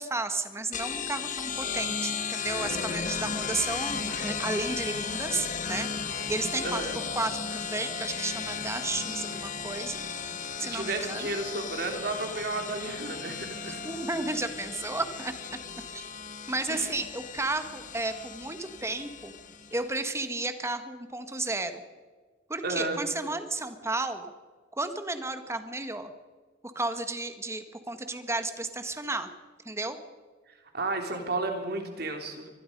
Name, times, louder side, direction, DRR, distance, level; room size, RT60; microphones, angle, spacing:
voice 1, 0.0-6.8 7.1-10.0 10.6-11.3 13.7-15.3 15.9-16.0 16.5-19.3 19.7-21.8 22.5-24.3 24.7-26.1 26.6-29.3 29.6-30.0, right 2 dB, 15° right, 8 dB, 1.6 m, -33 dB
sound 1, 0.7-19.9, left 6 dB, 45° left, 1.3 m, -35 dB
voice 2, 6.6-7.0 10.6-13.9 16.7-16.9 22.6-23.0 30.5-32.5, right 2 dB, 60° right, 4 dB, 3.5 m, -33 dB
25.0 x 20.0 x 5.4 m, 1.4 s
head